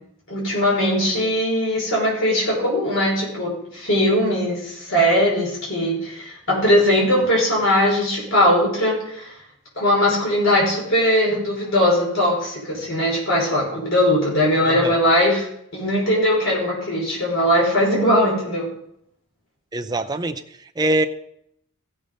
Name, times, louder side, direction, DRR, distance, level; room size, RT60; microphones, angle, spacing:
voice 1, 0.3-9.3 9.7-15.5 15.7-18.7, equal, 65° left, -3 dB, 4.9 m, -20 dB
voice 2, 14.7-15.0 19.7-20.4 20.8-21.1, right 1 dB, 20° right, 5 dB, 0.5 m, -23 dB
15.0 x 6.6 x 5.2 m, 0.74 s
head